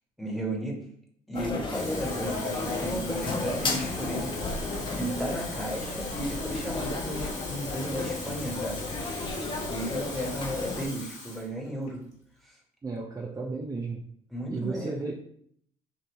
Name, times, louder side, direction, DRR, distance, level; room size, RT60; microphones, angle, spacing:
voice 1, 0.2-0.8 1.3-4.7 4.9-8.8 9.1-9.2 9.6-12.0 12.4-12.6 14.3-15.0, right 1 dB, ahead, -1 dB, 1.5 m, -34 dB
sound 1, 1.3-10.9, left 2 dB, 30° left, 0.9 m, -33 dB
Water tap faucet / Fill (with liquid), 1.6-11.5 11.9-12.1, left 3 dB, 50° left, 1.5 m, -41 dB
voice 2, 12.8-14.1 14.5-15.1, right 3 dB, 20° right, 0 dB, 0.6 m, -33 dB
5.1 x 2.6 x 3.1 m, 0.67 s
hypercardioid pair, 65°, 16 cm